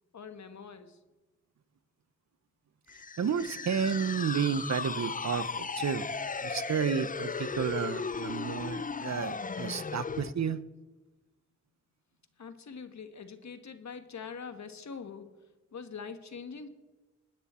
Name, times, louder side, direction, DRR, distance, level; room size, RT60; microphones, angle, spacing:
voice 1, 0.1-1.0 12.4-15.3 15.7-16.7, left 5 dB, 70° left, 9 dB, 1.3 m, -43 dB
sound 1, 2.9-10.3, left 5 dB, 30° left, 0.5 m, -36 dB
voice 2, 3.2-6.1 6.4-10.6, right 7 dB, 65° right, 15 dB, 0.8 m, -31 dB
20.5 x 9.6 x 4.3 m, 1.1 s
cardioid pair, 50°, 30 cm